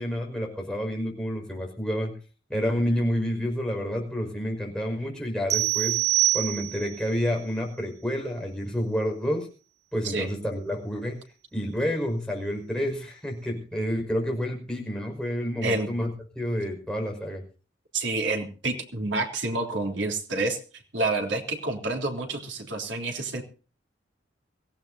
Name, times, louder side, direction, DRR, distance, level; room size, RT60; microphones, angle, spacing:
voice 1, 0.0-2.2 2.5-6.0 6.3-9.5 9.9-11.2 11.5-17.4, equal, 5° left, 0 dB, 5.5 m, -29 dB
sound 1, 5.5-7.1, right 16 dB, 35° right, 0.9 m, -25 dB
voice 2, 17.9-20.6 20.9-23.4, right 2 dB, 75° right, 2 dB, 3.3 m, -28 dB
24.0 x 16.0 x 2.8 m, 0.37 s
head